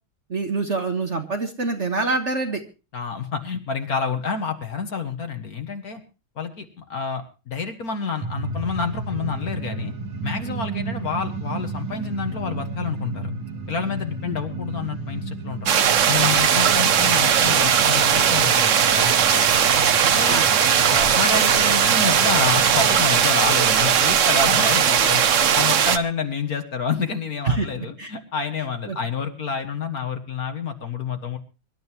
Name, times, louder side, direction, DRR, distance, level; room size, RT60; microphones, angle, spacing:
voice 1, 0.3-2.6 14.3-14.4 20.3-20.4 27.4-28.1 28.9-29.0, right 3 dB, 40° right, 5 dB, 1.5 m, -26 dB
voice 2, 2.9-6.0 6.4-9.9 10.2-13.3 13.7-15.7 16.1-19.5 20.1-20.4 20.9-25.2 25.5-31.4, left 5 dB, 50° left, 6 dB, 1.9 m, -28 dB
sound 1, 8.2-23.0, right 3 dB, 85° right, 2.6 m, -33 dB
sound 2, 15.7-26.0, right 8 dB, 55° right, 0.9 m, -18 dB
25.0 x 12.0 x 3.0 m, 0.32 s
omnidirectional pair, 2.2 m